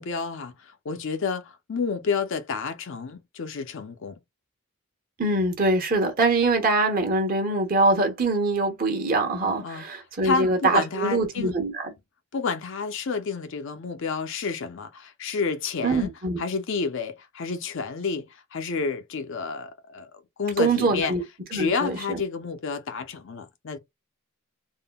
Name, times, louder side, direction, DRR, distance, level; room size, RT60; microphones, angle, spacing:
voice 1, 0.0-4.2 9.6-9.9 10.2-11.5 12.3-16.1 16.4-20.1 20.4-21.1 21.5-23.8, left 5 dB, 60° left, 0.5 m, -30 dB
voice 2, 5.2-11.9 15.8-16.4 20.6-21.2 21.5-22.2, right 2 dB, 40° right, 1.0 m, -23 dB
3.6 x 2.1 x 2.2 m
head